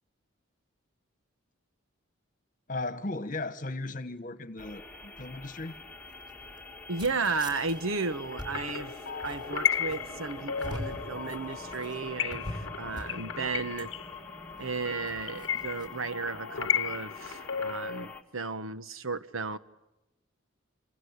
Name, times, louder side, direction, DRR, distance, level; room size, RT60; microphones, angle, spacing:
voice 1, 2.7-5.8, left 2 dB, 40° left, 1.4 m, -36 dB
sound 1, 4.6-18.2, left 3 dB, 5° left, 2.0 m, -45 dB
sound 2, 6.0-15.9, left 1 dB, 20° right, 5.4 m, -44 dB
voice 2, 6.9-13.9 14.6-19.6, right 4 dB, 80° right, 1.2 m, -34 dB
sound 3, 8.3-18.1, left 8 dB, 65° left, 0.9 m, -35 dB
27.0 x 26.0 x 8.2 m
head